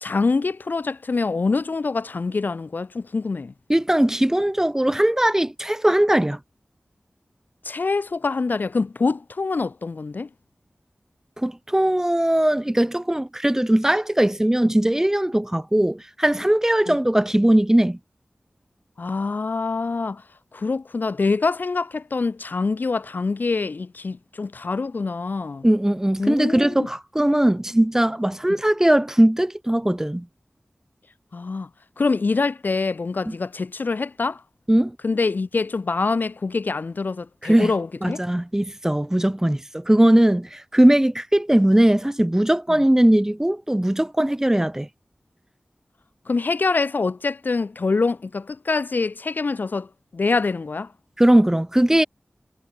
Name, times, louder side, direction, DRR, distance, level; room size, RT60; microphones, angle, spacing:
voice 1, 0.0-3.5 7.6-10.3 16.9-17.0 19.0-20.2 20.5-25.7 26.2-26.9 31.3-31.7 32.0-34.4 35.0-38.2 42.7-42.8 46.3-50.9, left 4 dB, 60° left, 0.3 m, -25 dB
voice 2, 3.7-6.4 11.4-18.0 25.6-30.3 33.3-33.4 34.7-35.0 37.4-37.7 38.0-44.9 51.2-52.1, right 1 dB, 15° right, 0.6 m, -19 dB
wide cardioid pair, 50°, 4 cm